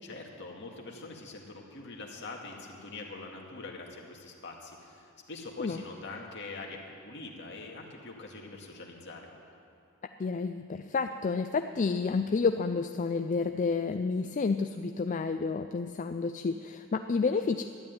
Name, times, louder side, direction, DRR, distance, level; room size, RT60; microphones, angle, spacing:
voice 1, 0.0-9.3, left 3 dB, 60° left, 0 dB, 2.1 m, -44 dB
voice 2, 10.2-17.6, left 4 dB, 40° left, 8 dB, 0.4 m, -30 dB
12.5 x 10.5 x 9.2 m, 2.4 s
head